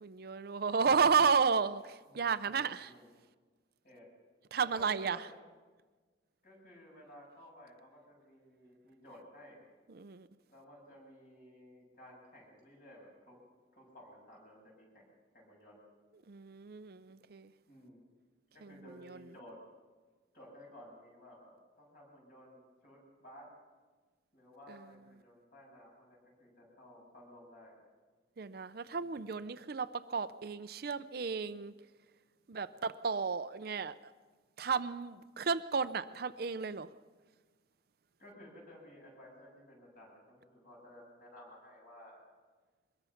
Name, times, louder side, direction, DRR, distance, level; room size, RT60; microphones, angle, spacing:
voice 1, 0.0-2.9 4.5-5.3 9.9-10.3 16.3-17.5 18.6-19.2 24.7-24.8 28.4-31.7 32.5-34.1 34.6-36.9, right 5 dB, 55° right, 0.5 m, -33 dB
voice 2, 2.1-3.1 3.8-4.1 4.6-5.4 6.4-9.6 10.5-13.4 13.7-15.8 17.7-18.0 18.5-19.6 20.3-23.5 24.3-27.8 28.9-29.3 38.2-42.2, equal, 45° left, 7.5 m, -55 dB
23.0 x 21.0 x 5.8 m
head